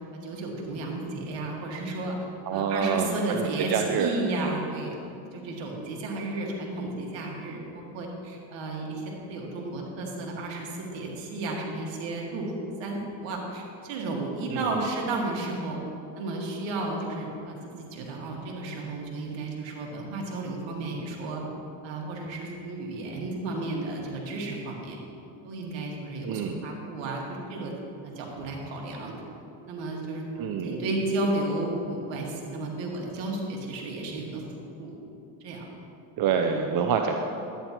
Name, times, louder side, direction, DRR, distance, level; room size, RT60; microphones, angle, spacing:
voice 1, 0.2-2.2 2.5-4.9 5.3-12.5 12.8-15.8 16.2-21.4 21.8-25.0 25.4-27.2 27.5-27.7 28.0-29.1 29.7-30.3 30.6-34.4 34.8-35.0 35.4-35.7 36.3-36.6, right 2 dB, 70° right, -1 dB, 1.9 m, -33 dB
voice 2, 2.5-4.1 14.5-14.9 26.2-26.6 30.4-30.7 36.2-37.1, right 7 dB, 50° right, 4 dB, 0.7 m, -27 dB
11.0 x 9.4 x 2.9 m, 2.7 s
supercardioid pair, 85°, 45 cm